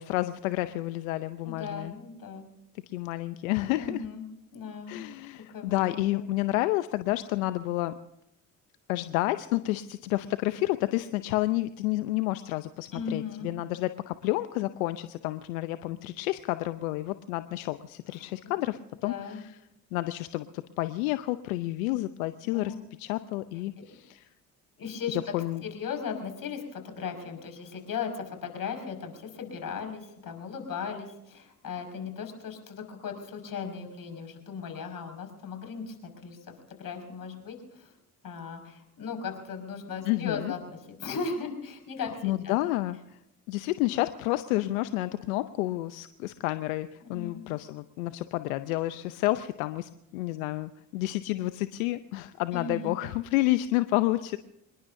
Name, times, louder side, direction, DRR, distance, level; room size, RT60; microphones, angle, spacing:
voice 1, 0.0-1.9 2.9-4.0 4.9-7.9 8.9-19.5 19.9-24.3 25.1-25.6 40.0-40.5 42.2-43.0 43.5-54.4, left 17 dB, 85° left, 12 dB, 0.7 m, -30 dB
voice 2, 1.4-2.5 3.8-4.3 4.5-5.0 5.5-6.2 12.9-13.5 18.1-18.7 19.0-19.4 21.8-22.0 22.5-22.8 23.8-23.9 24.8-25.3 25.6-36.4 36.7-37.9 38.2-42.6 47.0-47.5 52.5-53.0, left 5 dB, 55° left, 4 dB, 5.5 m, -37 dB
26.0 x 20.5 x 2.7 m, 0.85 s
hypercardioid pair, 55°, 40 cm